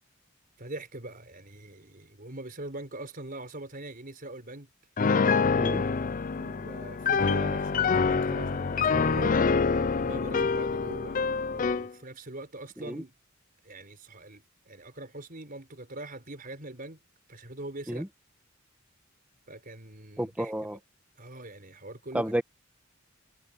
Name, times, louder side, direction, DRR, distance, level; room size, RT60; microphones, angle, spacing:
voice 1, 0.6-4.7 6.3-11.2 11.5-13.1 13.6-17.0 17.3-18.1 19.5-20.8 21.2-22.4, right 2 dB, 45° right, 5.2 m, -42 dB
Piano, 5.0-11.9, left 5 dB, 40° left, 0.5 m, -26 dB
voice 2, 20.2-20.8 22.1-22.4, right 1 dB, 5° right, 1.8 m, -30 dB
head